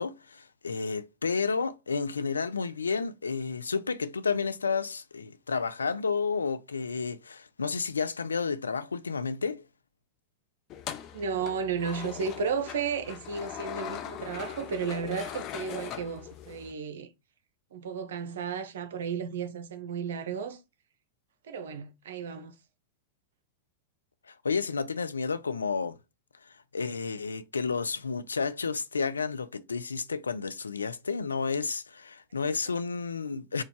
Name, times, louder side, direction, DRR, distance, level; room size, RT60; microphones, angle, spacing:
voice 1, 0.0-9.7 24.3-26.0 26.4-33.6, left 5 dB, 75° left, 0.4 m, -31 dB
sound 1, 10.7-16.7, left 10 dB, 35° left, 0.7 m, -40 dB
voice 2, 11.1-17.1 17.7-20.6 21.4-22.6, right 6 dB, 60° right, 0.5 m, -33 dB
4.5 x 2.2 x 4.6 m
figure-of-eight pair, 90°, 0 cm